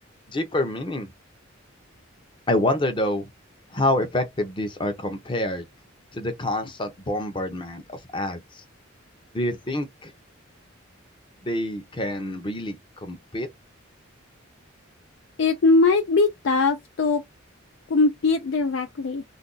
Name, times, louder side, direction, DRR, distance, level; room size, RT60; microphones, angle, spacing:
voice 1, 0.3-1.1 2.5-3.3 3.7-5.7 6.1-8.6 9.3-10.1 11.4-13.5, left 1 dB, 25° left, 0.7 m, -27 dB
voice 2, 15.4-17.2 17.9-19.2, left 3 dB, 60° left, 0.4 m, -21 dB
2.6 x 2.3 x 3.8 m
head